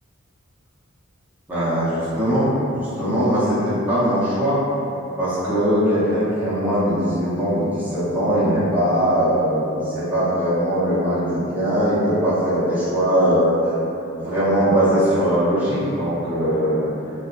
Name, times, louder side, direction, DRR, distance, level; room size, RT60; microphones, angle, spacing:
voice 1, 1.5-4.6 5.2-13.7 14.2-16.9, equal, 10° right, -13 dB, 0.6 m, -20 dB
2.5 x 2.3 x 2.4 m, 2.9 s
head